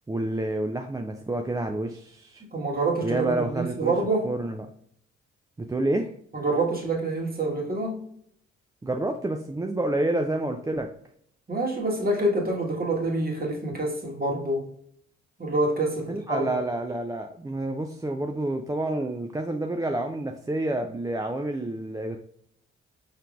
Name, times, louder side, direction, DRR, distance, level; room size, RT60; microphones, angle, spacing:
voice 1, 0.1-2.4 3.0-3.9 4.2-4.7 5.6-6.1 8.8-10.9 16.1-22.2, right 2 dB, 10° right, 4 dB, 0.4 m, -29 dB
voice 2, 2.5-4.3 6.3-8.0 11.5-14.7 15.4-16.5, right 2 dB, 25° right, -1 dB, 1.6 m, -26 dB
5.6 x 3.4 x 2.5 m, 0.64 s
hypercardioid pair, 45°, 34 cm